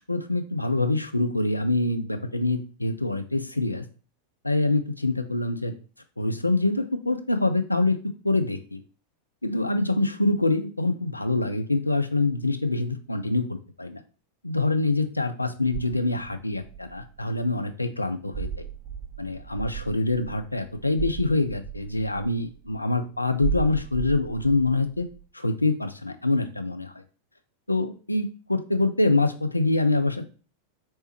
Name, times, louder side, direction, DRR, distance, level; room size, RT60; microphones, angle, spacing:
voice 1, 0.1-3.8 4.4-5.7 6.2-8.0 8.2-8.8 9.4-14.0 14.4-18.7 19.2-25.1 25.3-26.9 27.7-30.3, left 2 dB, 85° left, 9 dB, 0.4 m, -25 dB
sound 1, 15.7-17.4 18.3-22.8 23.4-25.2, right 9 dB, 10° right, 2.3 m, -36 dB
4.3 x 3.3 x 3.1 m, 0.38 s
figure-of-eight pair, 90°, 0 cm